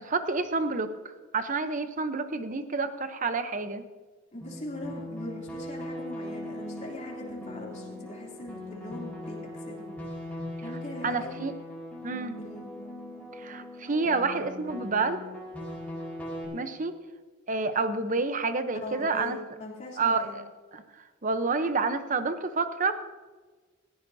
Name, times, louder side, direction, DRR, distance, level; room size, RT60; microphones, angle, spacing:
voice 1, 0.0-3.8 11.0-11.5 12.0-12.4 13.3-15.2 16.5-16.9 17.5-19.4 20.0-20.4 20.7-20.8 21.2-22.9, right 4 dB, 40° right, 10 dB, 0.8 m, -29 dB
voice 2, 4.3-9.9 10.6-11.4 12.4-12.7 18.7-20.3, left 2 dB, 35° left, -3 dB, 3.1 m, -41 dB
sound 1, 4.4-16.4, left 1 dB, 5° left, 4.7 m, -40 dB
19.0 x 14.5 x 2.8 m, 1.4 s
head